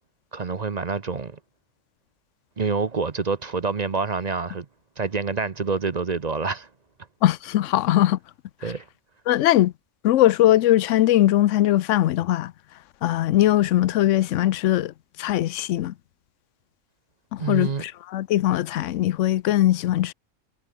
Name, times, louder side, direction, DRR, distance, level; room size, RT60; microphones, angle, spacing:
voice 1, 0.3-1.4 2.6-4.7 5.0-6.7 8.6-8.8 17.4-17.8, right 4 dB, 35° right, 0.9 m, -27 dB
voice 2, 7.2-8.2 9.3-9.7 10.0-12.5 13.0-15.9 17.3-20.1, left 13 dB, 75° left, 0.9 m, -20 dB
omnidirectional pair, 1.3 m